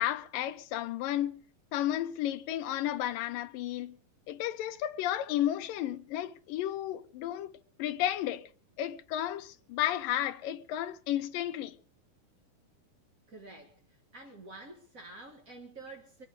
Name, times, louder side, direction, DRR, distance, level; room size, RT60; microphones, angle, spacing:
voice 1, 0.0-1.4 1.7-4.0 4.3-7.5 7.8-8.5 8.8-11.7, left 12 dB, 75° left, 2.6 m, -33 dB
voice 2, 13.3-13.8 14.1-16.3, right 2 dB, 40° right, 1.2 m, -48 dB
24.5 x 9.8 x 5.0 m
omnidirectional pair, 4.1 m